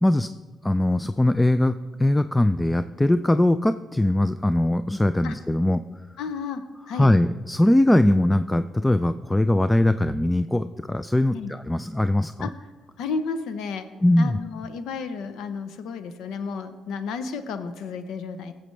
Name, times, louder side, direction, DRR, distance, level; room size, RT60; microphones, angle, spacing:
voice 1, 0.6-1.7 2.0-5.8 7.0-12.5 14.0-14.4, left 1 dB, 10° left, 12 dB, 0.3 m, -21 dB
voice 2, 6.2-7.1 11.3-11.5 12.4-12.5 13.0-13.9 14.2-18.5, left 5 dB, 85° left, 10 dB, 0.7 m, -32 dB
19.0 x 7.7 x 3.3 m, 1.3 s
cardioid pair, 90°, 0 cm